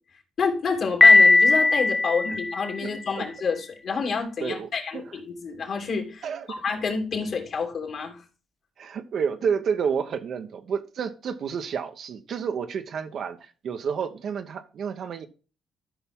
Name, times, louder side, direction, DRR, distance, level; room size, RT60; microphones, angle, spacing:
voice 1, 0.4-6.2 6.6-8.2, left 5 dB, 55° left, 2 dB, 3.1 m, -28 dB
Piano, 1.0-3.0, left 3 dB, 20° left, 0.4 m, -17 dB
voice 2, 2.8-3.3 4.4-5.0 6.2-6.5 8.8-15.3, right 6 dB, 60° right, 6 dB, 1.0 m, -30 dB
13.0 x 5.7 x 3.7 m, 0.35 s
cardioid pair, 90°, 0 cm